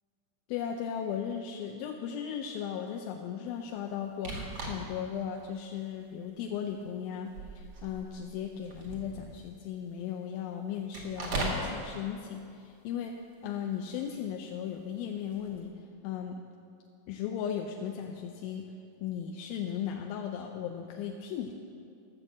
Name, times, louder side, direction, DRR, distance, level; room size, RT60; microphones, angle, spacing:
voice 1, 0.5-13.2 13.4-15.7 16.0-16.4 17.1-18.7 19.0-21.5, left 8 dB, 85° left, 2 dB, 2.4 m, -36 dB
sound 1, 4.2-5.1 5.6-5.7 6.6-6.9 7.2-9.5 10.9-11.7 15.3-15.7, right 2 dB, 50° right, 2.4 m, -38 dB
12.5 x 6.5 x 7.4 m, 2.5 s
omnidirectional pair, 4.2 m